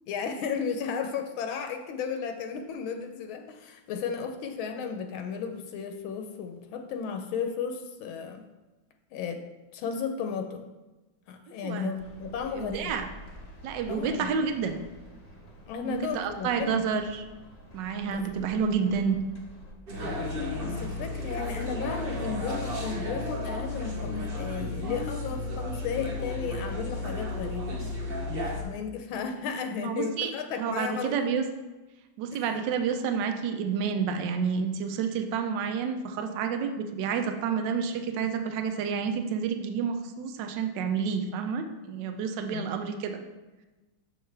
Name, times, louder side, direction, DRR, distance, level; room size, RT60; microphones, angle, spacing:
voice 1, 0.1-8.4 9.1-9.4 9.7-10.6 11.3-12.9 13.9-14.3 15.7-16.8 18.0-18.4 20.6-27.8 28.5-31.2 32.3-32.4 42.5-42.7, left 6 dB, 80° left, 6 dB, 1.4 m, -34 dB
sound 1, 12.0-19.7, equal, 50° left, 0.4 m, -49 dB
voice 2, 12.5-13.1 13.6-14.7 15.8-17.2 17.7-19.2 29.8-30.3 30.6-31.4 32.2-43.2, right 6 dB, 70° right, 7 dB, 1.2 m, -29 dB
sound 2, 19.9-28.6, left 2 dB, 45° right, 0.7 m, -33 dB
6.6 x 6.5 x 3.3 m, 1.1 s
omnidirectional pair, 2.3 m